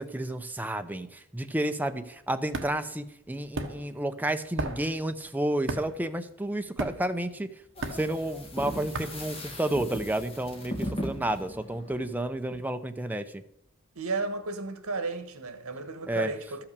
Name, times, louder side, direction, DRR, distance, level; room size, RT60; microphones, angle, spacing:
voice 1, 0.0-7.5 7.9-13.4 16.1-16.3, right 1 dB, 10° right, 0.6 m, -31 dB
sound 1, 1.9-10.1, right 2 dB, 60° right, 1.1 m, -38 dB
sound 2, 7.8-12.6, equal, 25° left, 2.0 m, -38 dB
voice 2, 13.9-16.6, right 3 dB, 85° right, 1.3 m, -33 dB
13.0 x 5.8 x 6.7 m
head